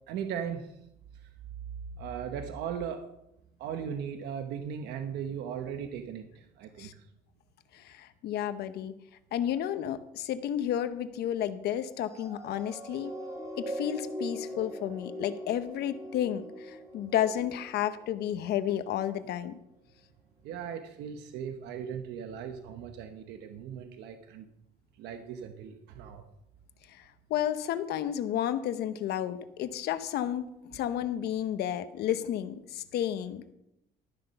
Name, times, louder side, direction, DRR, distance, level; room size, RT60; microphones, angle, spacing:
voice 1, 0.1-0.7 2.0-3.1 3.6-6.9 20.4-24.5 25.0-26.2, right 8 dB, 85° right, 7 dB, 1.0 m, -38 dB
voice 2, 7.7-9.0 9.3-13.1 13.6-19.6 26.9-27.0 27.3-33.4, left 10 dB, 75° left, 11 dB, 1.0 m, -32 dB
sound 1, 12.1-18.7 19.3-19.5, equal, 20° right, 3.0 m, -41 dB
13.0 x 7.7 x 5.7 m, 0.83 s
cardioid pair, 110°, 17 cm